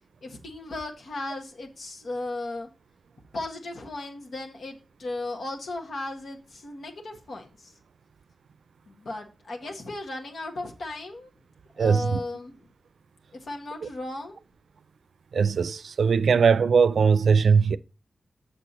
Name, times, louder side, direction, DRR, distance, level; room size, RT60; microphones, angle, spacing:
voice 1, 0.2-2.7 3.3-7.7 8.9-11.3 11.8-12.7 13.3-14.4, left 2 dB, 75° left, 1.5 m, -36 dB
voice 2, 11.8-12.2 15.3-17.8, right 5 dB, 80° right, 0.4 m, -20 dB
6.6 x 6.5 x 4.0 m
wide cardioid pair, 95°, 0 cm